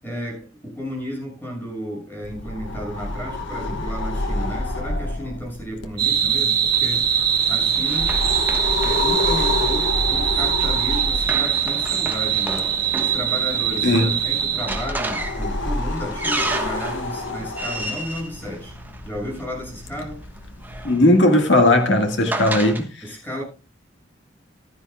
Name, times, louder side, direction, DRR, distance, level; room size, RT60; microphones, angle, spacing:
voice 1, 0.0-8.2 8.8-12.7 13.0-18.8 19.0-20.2 23.0-23.4, equal, 10° left, 6.6 m, -33 dB
sound 1, 2.2-21.0, left 2 dB, 90° left, 1.3 m, -29 dB
sound 2, 6.0-14.9, right 8 dB, 55° right, 3.5 m, -22 dB
Run, 6.7-19.4 20.4-22.8, right 2 dB, 10° right, 1.2 m, -33 dB
voice 2, 20.8-22.9, left 1 dB, 75° left, 1.8 m, -17 dB
15.5 x 13.0 x 2.3 m
head